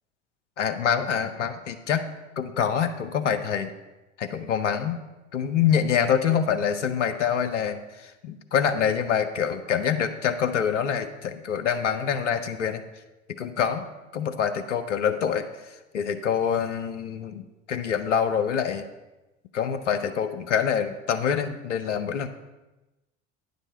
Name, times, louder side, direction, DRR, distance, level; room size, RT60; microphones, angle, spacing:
voice 1, 0.6-2.1 2.4-3.7 4.2-5.0 5.3-12.8 13.4-13.9 14.1-18.9 19.5-22.3, left 7 dB, 85° left, 9 dB, 0.7 m, -26 dB
9.8 x 5.3 x 5.4 m, 1.1 s
figure-of-eight pair, 65°, 36 cm